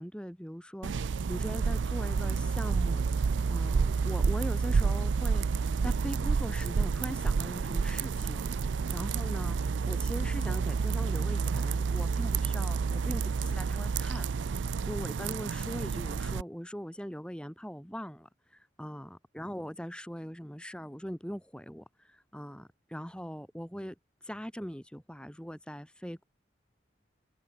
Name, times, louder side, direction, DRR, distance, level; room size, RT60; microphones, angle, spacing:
voice 1, 0.0-3.0 3.5-5.5 5.8-8.4 8.9-9.6 9.9-24.0 24.2-26.2, equal, 5° left, 3.5 m, -41 dB
sound 1, 0.8-16.4, right 5 dB, 85° right, 0.4 m, -29 dB
head